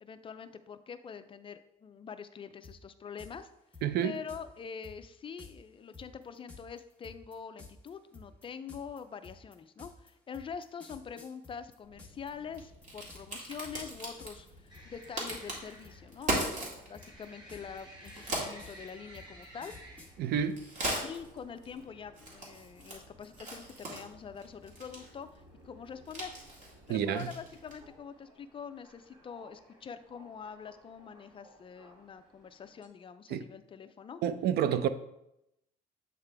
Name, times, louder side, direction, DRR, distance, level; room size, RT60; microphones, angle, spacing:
voice 1, 0.0-3.5 4.0-16.5 16.9-19.8 21.0-26.3 26.9-34.2 34.7-34.9, left 6 dB, 30° left, 10 dB, 0.4 m, -45 dB
sound 1, 2.6-2.8 3.2-3.3 3.7-4.4 4.8-5.0 5.4-5.5 5.9-12.3 12.5-13.4 13.6-13.9 14.2-14.5 14.7-15.6 15.8-16.7 16.9-20.1, left 3 dB, 10° left, 1.0 m, -52 dB
voice 2, 3.8-4.1 20.2-20.6 26.9-27.3 33.3-33.4 34.2-34.9, right 9 dB, 70° right, 12 dB, 0.4 m, -29 dB
Crack, 11.8-27.9, right 1 dB, 45° right, 1.9 m, -41 dB
sound 2, 14.7-32.9, right 1 dB, 25° right, 1.7 m, -57 dB
8.1 x 3.6 x 3.4 m, 0.84 s
cardioid pair, 110°, 17 cm